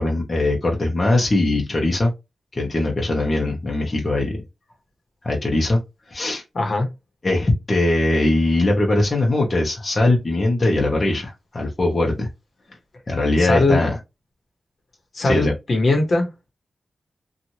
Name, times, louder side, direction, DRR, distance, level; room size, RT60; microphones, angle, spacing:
voice 1, 0.0-2.1 2.5-4.4 5.2-5.8 6.1-6.4 7.2-12.3 13.1-14.0 15.2-15.5, left 2 dB, 30° left, 0.8 m, -20 dB
voice 2, 6.5-6.9 13.4-13.9 15.1-16.3, left 2 dB, 55° left, 1.1 m, -20 dB
3.0 x 2.5 x 2.7 m
wide cardioid pair, 145°, 0 cm